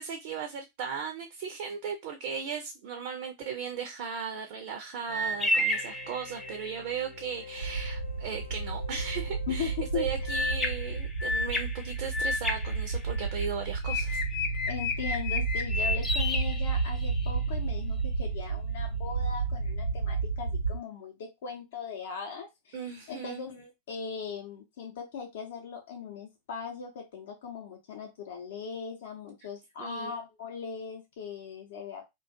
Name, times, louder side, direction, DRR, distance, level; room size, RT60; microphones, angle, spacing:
voice 1, 0.0-14.2 22.7-23.4 29.8-30.1, right 6 dB, 50° right, 5 dB, 0.4 m, -37 dB
sound 1, 5.1-11.2, left 5 dB, 85° left, 0.8 m, -46 dB
sound 2, 5.1-6.8 10.3-13.4 13.8-17.3, left 2 dB, 10° left, 0.5 m, -32 dB
sound 3, 7.6-20.8, right 4 dB, 90° right, 0.7 m, -32 dB
voice 2, 9.5-10.1 14.7-32.0, left 6 dB, 55° left, 2 dB, 0.5 m, -39 dB
2.4 x 2.2 x 2.6 m, 0.20 s
figure-of-eight pair, 90°, 0 cm